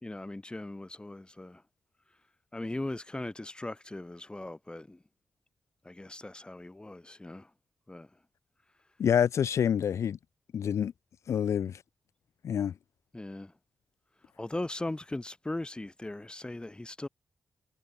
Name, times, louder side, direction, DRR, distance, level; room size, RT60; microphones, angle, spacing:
voice 1, 0.0-1.6 2.5-5.0 5.8-7.5 7.9-8.1 13.1-13.5 14.4-17.1, left 2 dB, 20° left, 4.7 m, -39 dB
voice 2, 9.0-10.2 10.5-10.9 11.3-11.8 12.4-12.7, left 8 dB, 75° left, 0.5 m, -27 dB
cardioid pair, 65°, 5 cm